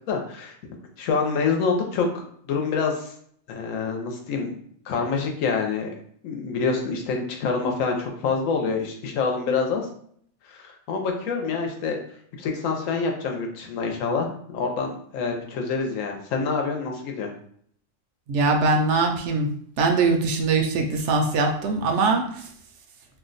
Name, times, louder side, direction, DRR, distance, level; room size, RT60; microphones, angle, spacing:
voice 1, 0.1-0.5 1.0-3.1 3.5-4.6 4.9-6.0 6.2-9.9 10.4-12.0 12.4-14.3 14.5-17.3, left 4 dB, 85° left, 2 dB, 1.0 m, -26 dB
voice 2, 18.3-19.5 19.8-22.4, right 3 dB, 70° right, 3 dB, 0.8 m, -22 dB
2.7 x 2.2 x 3.8 m, 0.63 s
omnidirectional pair, 1.3 m